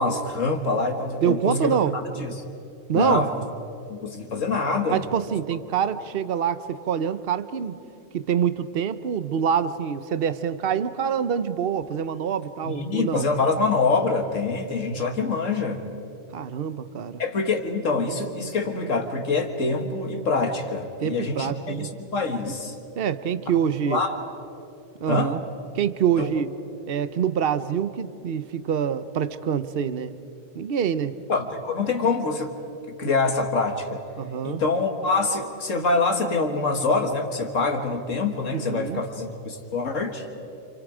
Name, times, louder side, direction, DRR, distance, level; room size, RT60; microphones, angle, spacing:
voice 1, 0.0-2.3 2.9-3.3 3.9-5.0 12.6-15.8 17.2-22.8 23.9-24.1 25.1-25.3 26.2-26.3 31.3-32.5 33.0-34.0 34.4-40.3, left 3 dB, 75° left, 4 dB, 1.9 m, -25 dB
voice 2, 1.2-2.0 2.9-3.3 4.9-7.8 8.1-13.3 16.3-17.2 21.0-21.9 23.0-24.0 25.0-25.4 25.7-26.5 26.9-30.1 30.5-31.2 33.0-33.1 34.2-34.6 38.5-39.0, right 8 dB, 50° right, 13 dB, 1.0 m, -25 dB
29.0 x 28.0 x 5.0 m, 2.7 s
omnidirectional pair, 1.3 m